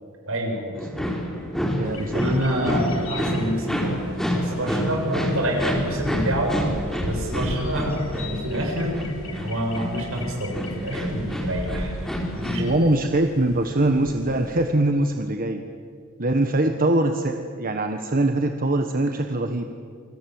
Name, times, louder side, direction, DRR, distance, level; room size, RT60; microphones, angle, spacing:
voice 1, 0.3-0.8 2.0-6.5 7.0-11.9 12.3-12.8, equal, 70° right, 1 dB, 7.3 m, -27 dB
sound 1, 0.8-12.6, equal, ahead, 4.6 m, -28 dB
sound 2, 1.8-14.7, left 1 dB, 75° left, 4.5 m, -38 dB
voice 2, 1.8-2.6 12.6-15.6 16.2-19.7, right 1 dB, 45° right, 6 dB, 1.4 m, -23 dB
29.0 x 25.0 x 7.8 m, 2.2 s
head